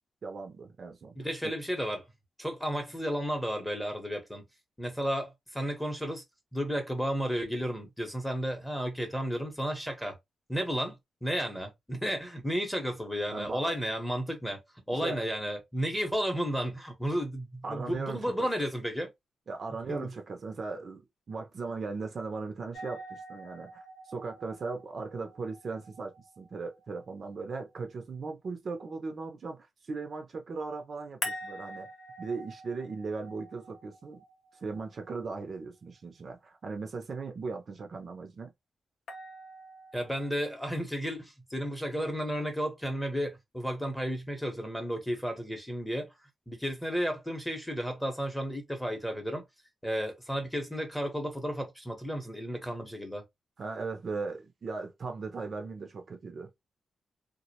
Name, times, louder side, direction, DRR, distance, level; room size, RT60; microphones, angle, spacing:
voice 1, 0.2-1.2 1.4-1.5 13.3-13.8 14.9-15.2 17.6-18.5 19.5-21.0 21.3-31.9 32.2-34.2 34.6-38.5 53.6-56.5, right 4 dB, 50° right, 0.5 m, -38 dB
voice 2, 1.2-2.0 2.4-4.4 4.8-6.2 6.5-10.2 10.5-14.6 14.9-19.1 19.9-20.1 39.9-46.1 46.5-49.4 49.8-53.2, equal, 5° left, 0.8 m, -33 dB
sound 1, 22.7-27.7 31.2-35.3 39.1-40.3, left 1 dB, 75° left, 0.6 m, -45 dB
2.4 x 2.0 x 2.8 m
cardioid pair, 110°, 0 cm